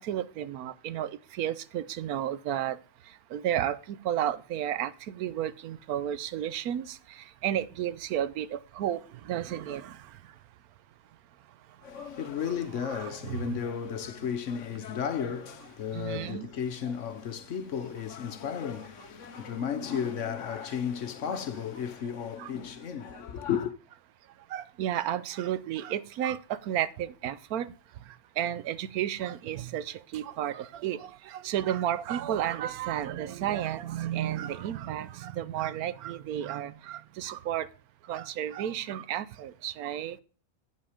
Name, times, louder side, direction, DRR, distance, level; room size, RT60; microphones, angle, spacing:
voice 1, 0.0-2.8 3.3-10.1 12.0-12.1 12.8-13.5 15.9-16.5 22.4-22.5 24.5-27.7 28.4-37.7 38.1-40.2, right 11 dB, 85° right, 1.1 m, -32 dB
voice 2, 11.8-23.7, left 7 dB, 60° left, 1.0 m, -34 dB
8.7 x 5.7 x 4.9 m
omnidirectional pair, 1.5 m